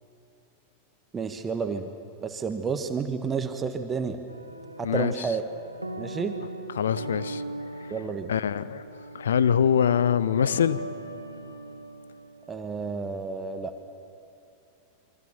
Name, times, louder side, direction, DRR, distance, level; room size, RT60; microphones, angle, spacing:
voice 1, 1.1-1.9 2.2-4.2 4.8-5.4 6.0-6.4 7.9-8.3 12.5-13.7, right 5 dB, 20° right, 7 dB, 1.4 m, -30 dB
sound 1, 4.3-12.6, right 2 dB, 85° right, 1.5 m, -39 dB
voice 2, 4.8-5.3 6.7-7.4 7.8-7.9 8.3-8.8 9.1-10.9, left 8 dB, 65° left, 17 dB, 0.8 m, -24 dB
27.5 x 23.5 x 7.1 m, 2.6 s
figure-of-eight pair, 90°, 0 cm